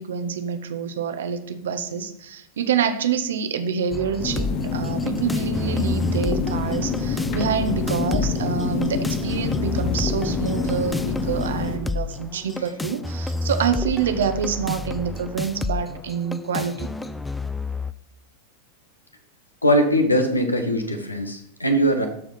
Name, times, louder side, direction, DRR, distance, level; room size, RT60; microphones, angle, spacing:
voice 1, 0.0-16.9, right 7 dB, 60° right, 9 dB, 1.0 m, -27 dB
sound 1, 3.9-17.9, left 2 dB, 5° left, 0.4 m, -30 dB
sound 2, 4.2-11.8, left 4 dB, 40° left, 1.2 m, -27 dB
voice 2, 19.6-22.1, equal, 85° left, 6 dB, 1.4 m, -21 dB
13.0 x 4.8 x 5.7 m, 0.73 s
figure-of-eight pair, 90°, 0 cm